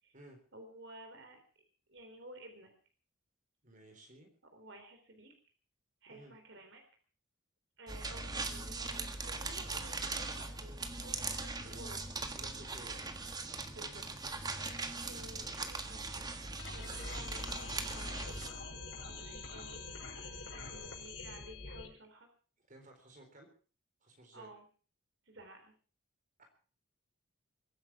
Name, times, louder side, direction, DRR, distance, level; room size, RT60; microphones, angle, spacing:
voice 1, 0.5-1.4 1.9-2.7 4.5-5.3 6.0-6.8 7.8-12.0 13.7-14.1 15.0-16.3 16.7-19.9 20.5-22.3 24.3-24.6 25.3-25.7, right 1 dB, 60° right, 5 dB, 3.8 m, -53 dB
voice 2, 3.6-4.3 6.1-6.3 12.4-13.1 20.6-21.0 22.6-23.5 24.0-24.5 26.4-26.5, right 1 dB, 40° right, 4 dB, 3.9 m, -56 dB
sound 1, 7.9-18.5, right 3 dB, 20° right, 1.5 m, -40 dB
sound 2, 16.6-21.9, left 3 dB, 65° left, 5.8 m, -45 dB
22.5 x 10.0 x 5.9 m, 0.40 s
head